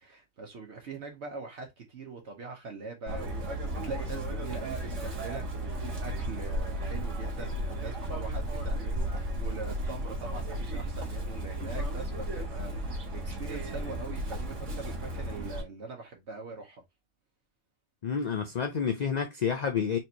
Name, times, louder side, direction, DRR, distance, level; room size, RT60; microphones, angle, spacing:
voice 1, 0.0-16.8, right 4 dB, 70° right, 1.1 m, -42 dB
Chirp tweet, 3.1-15.6, right 1 dB, 85° right, 1.8 m, -34 dB
voice 2, 18.0-20.0, left 6 dB, 50° left, 0.5 m, -29 dB
4.3 x 3.1 x 2.7 m
omnidirectional pair, 1.2 m